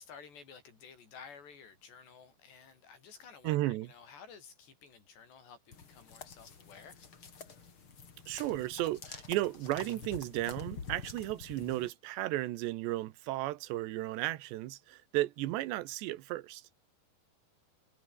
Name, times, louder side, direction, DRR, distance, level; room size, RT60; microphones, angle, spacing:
voice 1, 0.0-7.1, left 6 dB, 80° left, 7.4 m, -53 dB
voice 2, 3.4-3.9 8.3-16.6, right 16 dB, 90° right, 3.3 m, -34 dB
sound 1, 5.7-11.9, left 5 dB, 35° left, 3.2 m, -48 dB
omnidirectional pair, 4.8 m